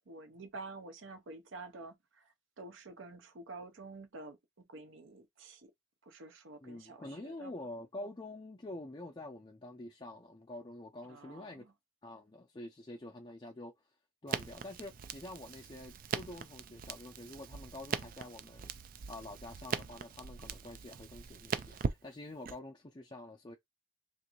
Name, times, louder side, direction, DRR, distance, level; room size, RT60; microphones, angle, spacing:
voice 1, 0.1-4.4 4.7-5.7 6.1-7.5 11.0-11.7, right 3 dB, 75° right, 0.7 m, -49 dB
voice 2, 6.6-11.6 12.0-13.7 14.2-18.7 19.1-23.5, left 1 dB, 25° left, 0.4 m, -47 dB
Crackle, 14.3-22.6, right 6 dB, 45° right, 0.4 m, -41 dB
3.6 x 2.6 x 2.9 m
head